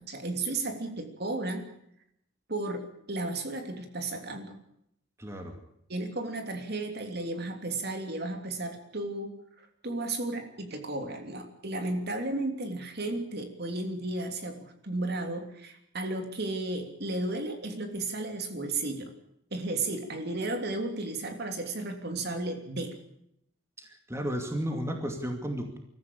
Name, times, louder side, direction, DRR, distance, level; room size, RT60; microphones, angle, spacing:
voice 1, 0.0-1.7 2.5-4.6 5.9-19.1 19.5-22.9, right 2 dB, 55° right, 5 dB, 3.1 m, -34 dB
voice 2, 5.2-5.6 23.8-25.8, equal, 15° right, 4 dB, 2.5 m, -33 dB
24.0 x 14.5 x 8.7 m, 0.74 s
head